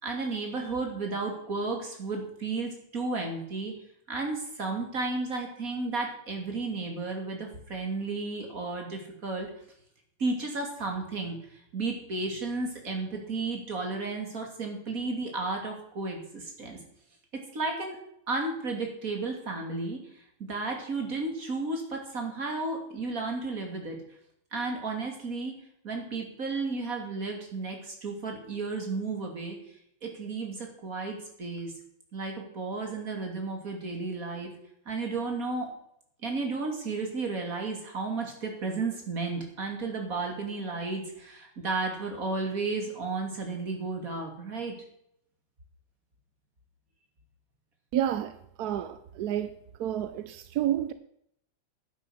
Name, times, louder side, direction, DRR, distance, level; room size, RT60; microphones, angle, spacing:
voice 1, 0.0-3.7 4.1-9.5 10.2-11.4 11.7-16.8 17.5-18.0 18.3-20.0 20.5-24.0 24.5-25.5 25.8-29.6 30.0-31.7 32.1-34.5 34.9-35.7 36.2-44.8, right 3 dB, 45° right, 3.2 m, -33 dB
voice 2, 47.9-49.5 49.8-50.9, right 11 dB, 65° right, 1.0 m, -30 dB
11.0 x 9.4 x 6.4 m
omnidirectional pair, 2.1 m